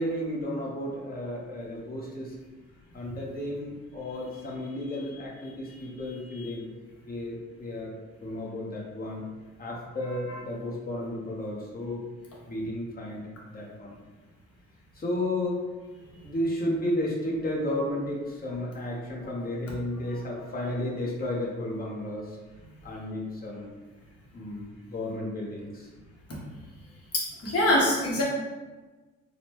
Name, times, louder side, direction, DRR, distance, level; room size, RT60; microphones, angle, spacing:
voice 1, 0.0-2.3 2.9-6.7 7.1-7.9 8.2-9.2 9.6-12.0 12.5-13.9 14.9-15.6 16.2-22.4 22.8-23.7 24.3-25.9, left 1 dB, 30° left, -4 dB, 1.0 m, -33 dB
voice 2, 27.1-28.2, left 1 dB, 50° left, -4 dB, 1.2 m, -25 dB
4.0 x 2.1 x 3.0 m, 1.2 s
cardioid pair, 90°, 30 cm